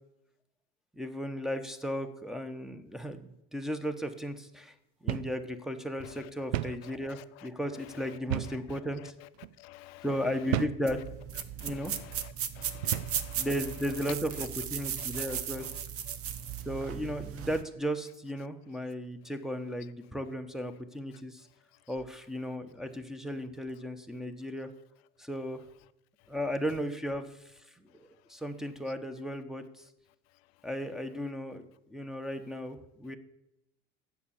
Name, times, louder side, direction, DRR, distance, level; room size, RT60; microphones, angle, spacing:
voice 1, 0.9-4.7 5.0-9.1 10.0-11.0 11.6-11.9 13.4-15.7 16.6-21.5 21.9-24.7 25.2-25.6 26.3-29.8 30.6-33.2, equal, ahead, 1.1 m, -35 dB
sound 1, 5.1-5.4 5.7-5.8 6.5-6.8 8.3-8.7 9.3-9.5 10.5-10.9 11.6-11.8 12.8-13.2, right 13 dB, 75° right, 0.5 m, -33 dB
voice 2, 9.6-10.0 11.6-11.8 12.6-13.5 15.1-15.2, left 18 dB, 75° left, 0.6 m, -50 dB
sound 2, 10.9-17.6, right 9 dB, 45° right, 1.0 m, -36 dB
8.4 x 7.0 x 7.1 m
hypercardioid pair, 85°, 31 cm